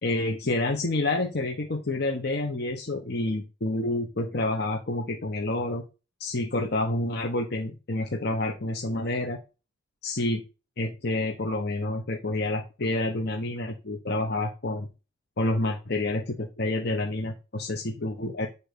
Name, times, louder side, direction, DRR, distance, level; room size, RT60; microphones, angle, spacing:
voice 1, 0.0-5.8 6.2-9.4 10.0-10.4 10.8-14.9 15.4-18.5, left 2 dB, 55° left, 2 dB, 1.0 m, -28 dB
9.9 x 4.0 x 6.7 m, 0.31 s
head